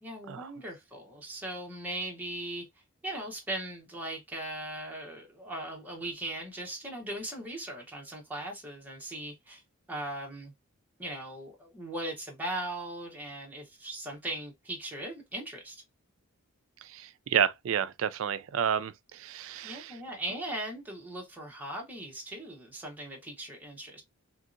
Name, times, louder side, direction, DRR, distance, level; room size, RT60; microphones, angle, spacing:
voice 1, 0.0-2.7 3.0-9.6 9.9-10.5 11.0-15.8 19.6-24.0, right 1 dB, 10° right, 0.8 m, -39 dB
voice 2, 16.8-20.0, right 8 dB, 60° right, 0.3 m, -30 dB
2.9 x 2.7 x 2.4 m
head